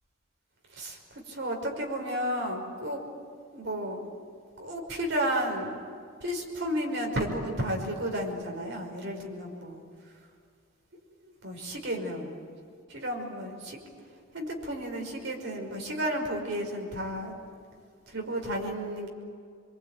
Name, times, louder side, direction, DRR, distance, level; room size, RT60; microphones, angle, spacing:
voice 1, 0.7-3.0 3.5-4.0 4.6-5.7 6.2-9.8 11.4-12.4 12.9-13.8 14.3-17.3 18.1-19.1, equal, 55° right, 1 dB, 5.6 m, -32 dB
26.0 x 23.0 x 9.3 m, 2.2 s
head